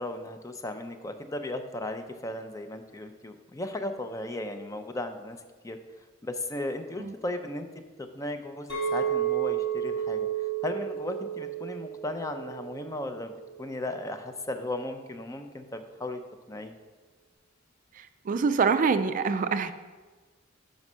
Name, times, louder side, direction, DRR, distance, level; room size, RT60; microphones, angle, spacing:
voice 1, 0.0-5.4 5.6-5.8 6.2-7.7 8.0-10.3 10.6-13.3 13.6-16.2 16.5-16.7, left 1 dB, 15° left, 8 dB, 0.5 m, -36 dB
Chink clink, 8.7-13.0 13.5-13.9, right 9 dB, 60° left, 2.3 m, -31 dB
voice 2, 18.0-19.7, right 5 dB, 45° right, 10 dB, 0.3 m, -25 dB
5.5 x 5.2 x 6.1 m, 1.3 s
head